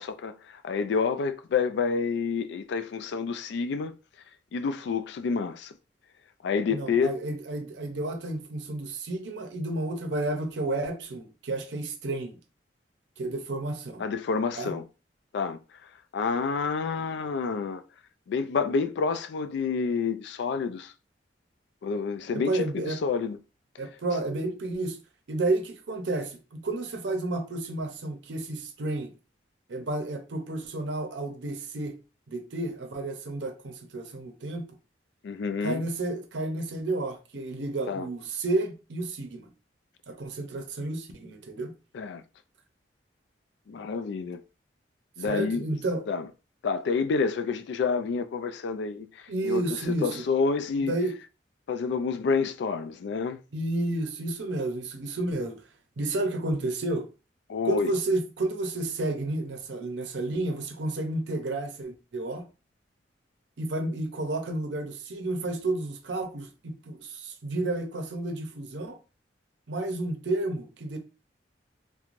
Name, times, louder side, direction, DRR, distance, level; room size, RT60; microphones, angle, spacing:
voice 1, 0.0-3.9 4.5-5.7 6.4-7.1 14.0-14.8 15.3-15.6 16.1-17.8 18.3-20.9 21.8-23.4 35.2-35.8 37.9-38.1 41.9-42.2 43.7-44.4 45.2-45.6 46.1-46.3 46.6-49.6 50.0-50.9 51.7-53.4 57.5-57.9, left 5 dB, 70° left, 0.3 m, -28 dB
voice 2, 6.7-12.4 13.2-14.0 14.6-14.7 22.3-23.0 23.8-25.0 25.3-29.1 29.7-32.0 32.3-34.6 35.6-39.5 40.1-41.7 45.2-46.1 49.3-50.2 50.9-51.2 53.5-55.6 56.0-57.1 57.6-62.5 63.6-69.0 69.7-71.0, right 2 dB, 75° right, 0.6 m, -31 dB
3.1 x 2.1 x 2.5 m
head